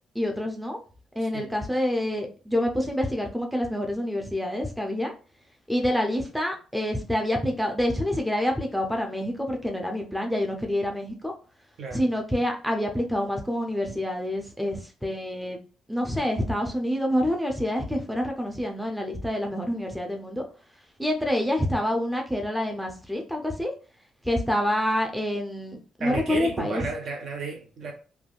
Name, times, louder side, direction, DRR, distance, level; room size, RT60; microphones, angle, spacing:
voice 1, 0.1-0.8 1.2-5.1 5.7-11.3 11.9-15.6 15.9-20.5 21.0-23.7 24.2-26.9, left 1 dB, ahead, 0.5 m, -27 dB
voice 2, 26.0-27.9, right 4 dB, 60° right, 0.8 m, -33 dB
3.3 x 2.2 x 2.4 m
cardioid pair, 90°, 0 cm